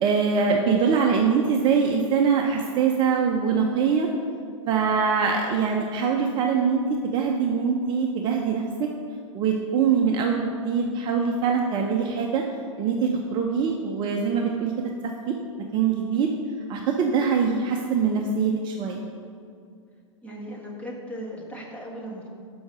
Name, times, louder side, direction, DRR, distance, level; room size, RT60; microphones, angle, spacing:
voice 1, 0.0-4.1 4.7-8.9 9.3-12.4 12.8-14.7 15.0-15.3 15.7-16.3 16.7-19.0, right 6 dB, 30° right, 2 dB, 0.6 m, -23 dB
voice 2, 20.2-22.3, equal, 10° left, -2 dB, 1.3 m, -37 dB
6.2 x 5.5 x 6.1 m, 2.3 s
hypercardioid pair, 125°, 17 cm